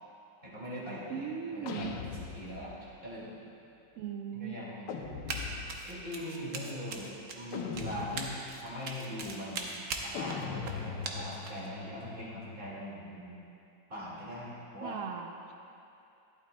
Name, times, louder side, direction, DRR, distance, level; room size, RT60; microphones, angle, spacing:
voice 1, 0.4-2.7 3.0-3.3 4.3-4.9 5.8-9.7 10.0-13.4 13.9-15.0, equal, 30° right, -7 dB, 2.2 m, -41 dB
voice 2, 1.1-1.9 4.0-4.8 14.8-15.5, right 7 dB, 80° right, 3 dB, 0.7 m, -38 dB
sound 1, 1.6-2.9 4.9-6.0 7.5-8.6 10.1-12.8, left 6 dB, 80° left, 1.3 m, -40 dB
Run, 5.3-5.4 5.7-11.7, right 4 dB, 60° right, 1.1 m, -40 dB
12.0 x 11.5 x 2.2 m, 2.7 s
omnidirectional pair, 2.0 m